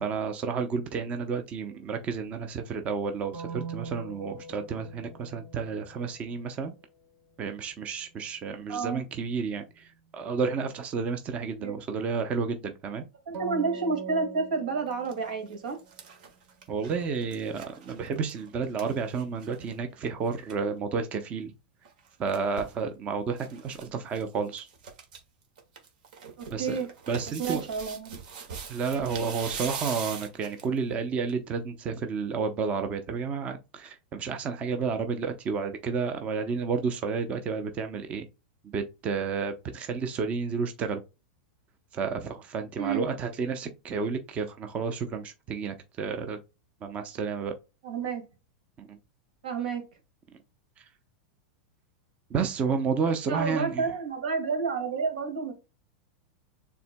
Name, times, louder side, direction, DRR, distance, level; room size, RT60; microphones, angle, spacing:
voice 1, 0.0-6.7 7.4-9.9 10.1-13.0 16.7-21.5 22.2-24.7 26.5-26.8 27.1-27.6 28.7-38.3 38.7-41.0 41.9-46.4 46.8-47.5 48.8-48.9 52.3-53.8, right 5 dB, 30° right, 0.7 m, -31 dB
sound 1, 3.3-7.1 13.3-16.1 16.6-18.9, right 5 dB, 45° right, 1.4 m, -43 dB
voice 2, 8.7-9.0 11.6-11.7 13.3-15.8 26.4-26.9 27.4-28.2 42.8-43.0 47.8-48.2 49.4-49.8 53.3-55.5, right 5 dB, 85° right, 2.1 m, -30 dB
sound 2, 14.9-15.1 15.5-19.8 20.1-20.2 20.3-20.6 21.9-22.8 23.4-23.9 24.1-24.2 24.6-25.2 25.6-30.8 31.3-31.4, right 6 dB, 70° right, 1.6 m, -42 dB
6.8 x 3.5 x 2.2 m
supercardioid pair, 135°, 5 cm